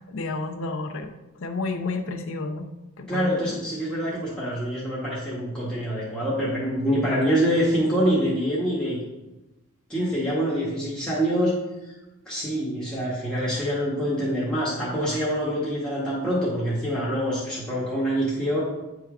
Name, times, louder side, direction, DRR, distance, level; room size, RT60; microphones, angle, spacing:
voice 1, 0.1-2.7 3.0-3.6, left 3 dB, 65° left, 5 dB, 0.6 m, -31 dB
voice 2, 3.1-9.0 9.9-11.5 11.8-11.9 12.2-18.6, equal, 5° left, -8 dB, 1.2 m, -25 dB
8.4 x 3.4 x 4.8 m, 1.0 s
head